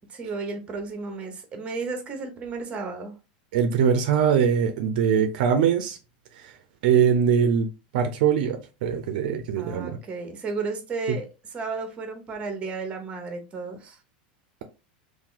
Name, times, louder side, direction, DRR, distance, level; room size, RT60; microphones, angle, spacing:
voice 1, 0.1-3.1 9.6-11.3 11.5-14.0, right 4 dB, 25° right, 1.0 m, -33 dB
voice 2, 3.5-6.0 6.8-7.7 7.9-10.0, right 7 dB, 70° right, 0.6 m, -22 dB
2.8 x 2.6 x 3.8 m
supercardioid pair, 125°, 5 cm